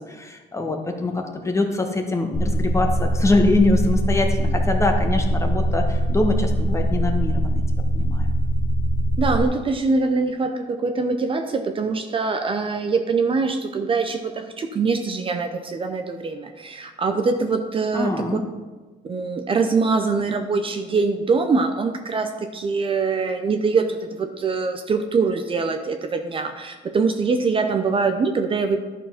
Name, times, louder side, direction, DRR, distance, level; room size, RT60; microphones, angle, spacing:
voice 1, 0.1-7.6 7.9-8.3 17.9-18.5, left 2 dB, 15° left, 4 dB, 1.2 m, -23 dB
sound 1, 2.3-9.5, equal, 50° left, 1.0 m, -22 dB
voice 2, 9.2-18.1 19.0-28.8, right 4 dB, 30° right, 6 dB, 0.6 m, -23 dB
11.0 x 4.5 x 5.8 m, 1.3 s
cardioid pair, 110°, 17 cm